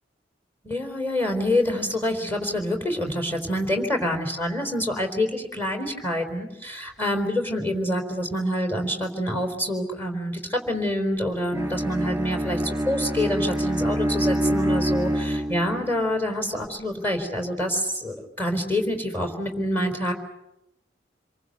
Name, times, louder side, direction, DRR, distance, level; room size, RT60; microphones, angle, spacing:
voice 1, 0.6-20.1, left 1 dB, 10° left, 4 dB, 4.3 m, -26 dB
Bowed string instrument, 11.5-15.9, right 1 dB, 10° right, 3.0 m, -26 dB
27.0 x 23.5 x 8.0 m, 0.90 s
head